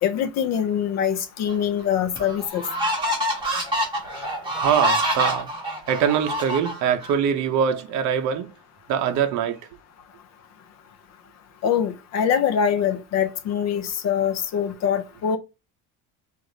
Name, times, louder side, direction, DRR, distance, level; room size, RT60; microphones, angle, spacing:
voice 1, 0.0-2.6 11.6-15.4, left 8 dB, 45° left, 0.5 m, -23 dB
sound 1, 1.5-1.6 2.2-7.1, equal, 10° right, 1.5 m, -26 dB
voice 2, 4.6-5.5 5.9-8.5 8.9-9.6, right 8 dB, 45° right, 0.7 m, -23 dB
4.8 x 2.5 x 3.9 m
cardioid pair, 175°, 40 cm